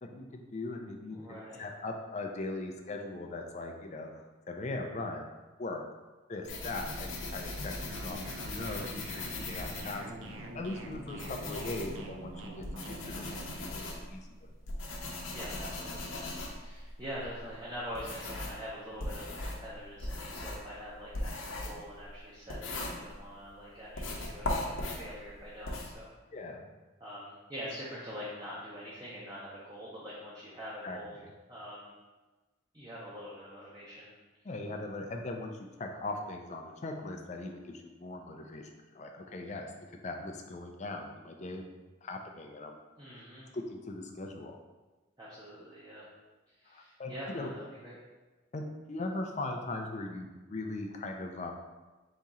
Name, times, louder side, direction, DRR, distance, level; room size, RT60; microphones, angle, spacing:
voice 1, 0.0-5.2 5.6-5.8 6.3-8.2 8.5-10.1 10.5-13.8 14.1-14.5 26.3-26.7 30.8-31.3 34.4-35.5 35.8-39.7 40.0-41.6 42.0-42.8 43.1-43.2 43.5-44.6 46.7-47.5 48.5-51.5, left 2 dB, 35° left, 3 dB, 0.4 m, -40 dB
voice 2, 1.1-1.6 15.3-16.3 16.5-26.1 27.0-31.2 31.5-31.9 32.7-34.1 43.0-43.5 45.2-46.1 46.6-48.0, equal, 20° right, -8 dB, 0.7 m, -44 dB
sound 1, 6.4-10.4 10.9-18.6 19.0-23.5 23.9-25.9, left 2 dB, 85° left, 0.8 m, -39 dB
sound 2, 7.9-13.5, right 1 dB, 75° right, 0.5 m, -45 dB
4.1 x 2.8 x 3.6 m, 1.2 s
head